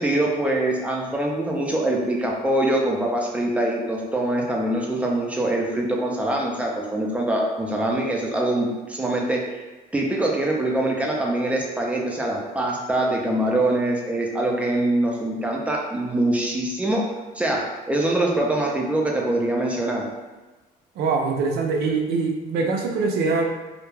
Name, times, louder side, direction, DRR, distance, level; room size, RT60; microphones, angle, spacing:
voice 1, 0.0-9.4 9.9-17.1 17.3-20.1, right 1 dB, 10° right, -1 dB, 0.4 m, -24 dB
voice 2, 21.0-23.4, right 4 dB, 70° right, 2 dB, 0.4 m, -23 dB
2.2 x 2.1 x 3.1 m, 1.2 s
cardioid pair, 110°, 17 cm